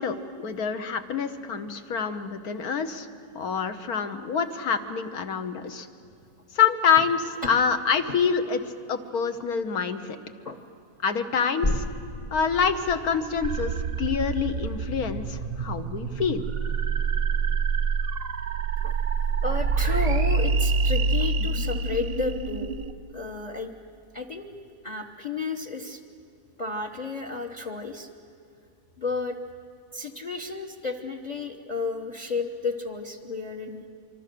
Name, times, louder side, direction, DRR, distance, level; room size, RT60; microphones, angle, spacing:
voice 1, 0.0-3.1 3.3-5.9 6.5-8.6 8.9-10.2 11.0-11.8 12.3-16.4, left 6 dB, 65° left, 8 dB, 1.5 m, -26 dB
sound 1, 11.6-18.9 19.3-19.4, left 1 dB, 50° left, 0.3 m, -36 dB
sound 2, 13.4-22.9, right 4 dB, 50° right, 0.8 m, -26 dB
voice 2, 19.4-22.7 23.1-23.7 24.1-24.5 24.8-26.0 26.6-28.1 29.0-29.4 29.9-33.8, left 3 dB, 30° left, 5 dB, 1.0 m, -32 dB
25.0 x 24.5 x 6.8 m, 2.4 s
omnidirectional pair, 1.8 m